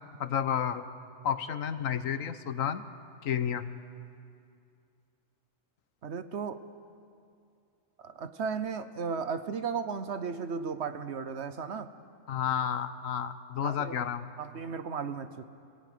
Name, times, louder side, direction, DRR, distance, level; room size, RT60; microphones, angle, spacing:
voice 1, 0.2-0.8 1.2-2.8 3.2-3.6 12.3-14.3, left 8 dB, 85° left, 12 dB, 1.3 m, -31 dB
voice 2, 6.0-6.6 8.0-11.9 13.6-14.0 14.4-15.4, right 5 dB, 60° right, 11 dB, 1.1 m, -35 dB
24.5 x 17.5 x 9.3 m, 2.4 s
omnidirectional pair, 1.3 m